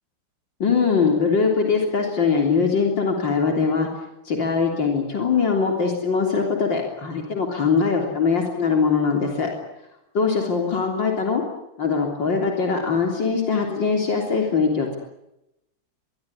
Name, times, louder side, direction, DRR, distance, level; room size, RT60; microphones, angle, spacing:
voice 1, 0.6-3.9 4.2-9.5 10.1-11.4 11.8-15.0, left 5 dB, 75° left, 2 dB, 4.2 m, -22 dB
24.5 x 22.0 x 9.9 m, 0.88 s
omnidirectional pair, 2.1 m